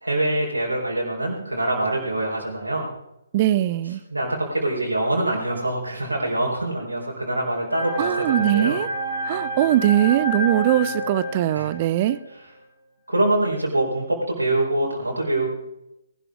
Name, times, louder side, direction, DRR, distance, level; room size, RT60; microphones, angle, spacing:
voice 1, 0.0-2.9 4.1-8.8 11.5-11.7 13.1-15.5, right 1 dB, 80° right, -2 dB, 4.2 m, -24 dB
voice 2, 3.3-4.0 8.0-8.9 9.2-12.2, right 13 dB, 35° right, 17 dB, 0.6 m, -21 dB
sound 1, 7.7-12.2, equal, 60° left, 4.6 m, -29 dB
19.5 x 12.0 x 3.6 m, 0.88 s
figure-of-eight pair, 135°, 0 cm